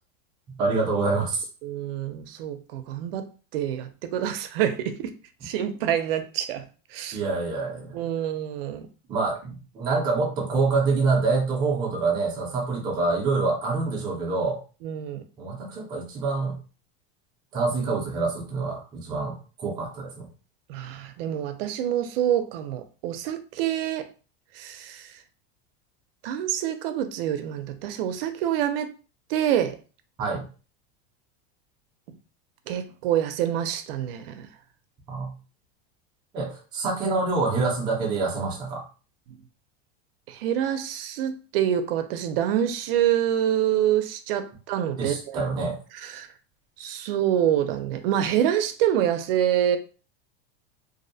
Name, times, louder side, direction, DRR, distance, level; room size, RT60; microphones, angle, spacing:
voice 1, 0.6-1.4 7.1-7.9 9.1-14.6 15.4-16.6 17.5-20.3 30.2-30.4 35.1-35.3 36.3-38.8 45.0-45.8, right 3 dB, 15° right, 0.4 m, -26 dB
voice 2, 1.6-3.3 3.5-5.1 5.4-6.6 6.9-7.2 7.9-8.9 14.8-15.2 20.7-24.1 24.5-25.2 26.2-28.9 29.3-29.8 32.7-34.5 40.3-45.5 46.0-46.3 46.8-49.8, right 10 dB, 75° right, 0.5 m, -26 dB
2.5 x 2.0 x 2.6 m
supercardioid pair, 175°, 29 cm